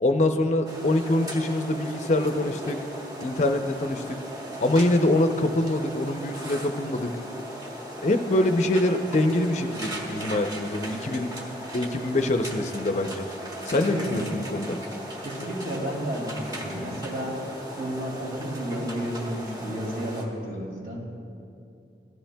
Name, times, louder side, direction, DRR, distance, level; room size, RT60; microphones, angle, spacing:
voice 1, 0.0-2.8 3.2-4.2 4.6-7.2 8.0-11.3 11.7-13.2 13.7-14.8, left 1 dB, 40° left, 6 dB, 0.5 m, -24 dB
sound 1, 0.6-20.2, equal, 20° right, 1.1 m, -37 dB
voice 2, 13.8-14.2 15.2-17.4 17.8-21.0, right 1 dB, 55° right, -2 dB, 2.1 m, -32 dB
16.0 x 13.0 x 2.2 m, 2.6 s
head